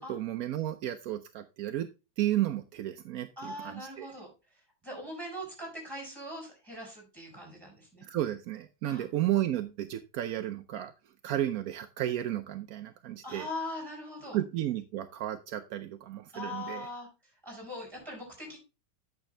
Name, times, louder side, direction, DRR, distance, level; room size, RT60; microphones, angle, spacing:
voice 1, 0.0-1.9 2.2-4.1 8.1-10.9 11.2-13.5 14.3-16.9, right 13 dB, 75° right, 8 dB, 0.8 m, -33 dB
voice 2, 3.4-4.3 4.8-8.1 8.9-9.0 13.2-14.4 16.3-17.1 17.4-18.6, left 1 dB, 10° right, 0 dB, 4.6 m, -41 dB
8.9 x 6.2 x 3.2 m, 0.27 s
omnidirectional pair, 2.1 m